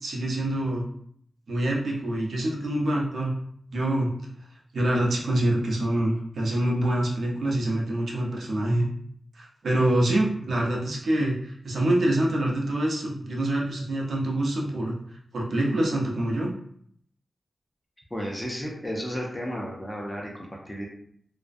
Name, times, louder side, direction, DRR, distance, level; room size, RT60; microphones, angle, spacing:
voice 1, 0.0-0.8 1.5-3.3 3.7-4.1 4.7-8.9 9.3-14.9 15.3-16.5, right 1 dB, 70° right, -2 dB, 0.5 m, -25 dB
voice 2, 18.1-20.9, equal, 10° left, -2 dB, 0.4 m, -33 dB
2.4 x 2.0 x 2.5 m, 0.65 s
wide cardioid pair, 180°, 0 cm